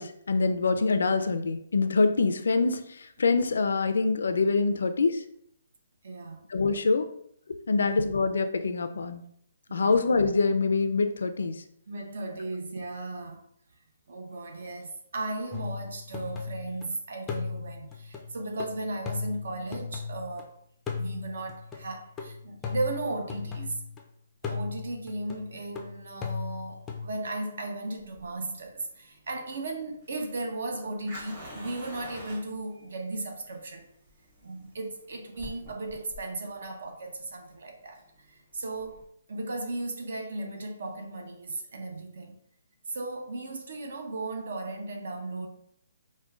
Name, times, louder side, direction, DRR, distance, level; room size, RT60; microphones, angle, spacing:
voice 1, 0.0-5.2 6.5-7.1 7.7-9.2 9.7-11.6, left 4 dB, 80° left, 0.4 m, -25 dB
voice 2, 6.0-6.4 7.7-8.0 9.7-10.0 11.9-13.5 14.1-20.6 20.9-23.8 24.4-33.9 34.4-38.0 38.3-42.4 42.9-45.5, right 2 dB, 70° right, 0.7 m, -36 dB
sound 1, 15.5-16.9 17.3-20.4 20.9-24.0 24.4-27.1, left 5 dB, 10° left, 0.3 m, -37 dB
Fire, 28.0-39.0, equal, 40° right, 1.4 m, -48 dB
4.9 x 2.2 x 2.3 m
hypercardioid pair, 160°, 0 cm